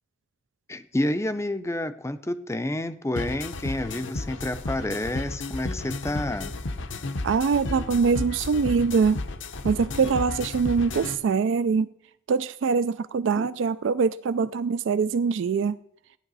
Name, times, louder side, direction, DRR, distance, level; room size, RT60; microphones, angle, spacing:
voice 1, 0.7-6.5 13.4-13.5, left 1 dB, 15° left, 0.5 m, -29 dB
sound 1, 3.2-11.2, left 2 dB, 70° left, 0.8 m, -33 dB
voice 2, 7.2-9.2 9.6-11.9 12.3-15.8, right 5 dB, 70° right, 0.4 m, -23 dB
14.5 x 9.9 x 4.0 m
head